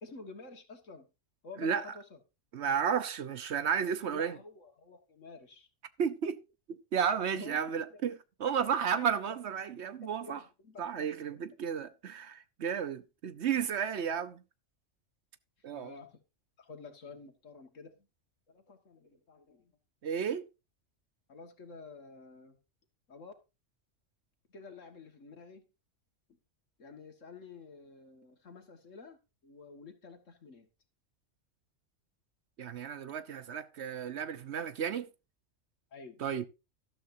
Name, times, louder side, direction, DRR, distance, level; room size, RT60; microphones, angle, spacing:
voice 1, 0.0-1.1 1.4-2.2 4.1-5.7 7.3-7.7 7.9-8.0 9.0-9.4 9.9-11.1 11.3-11.4 15.7-16.2 16.6-18.1 18.5-19.7 21.3-22.6 23.1-23.3 24.5-25.6 26.8-29.2 29.4-30.7 35.9-36.2, left 3 dB, 80° left, 2.1 m, -50 dB
voice 2, 1.6-1.9 2.5-4.3 6.0-6.4 6.9-10.4 10.8-14.4 15.6-15.9 20.0-20.5 32.6-35.1 36.2-36.5, right 7 dB, 65° right, 1.1 m, -33 dB
13.0 x 12.5 x 2.7 m
omnidirectional pair, 1.3 m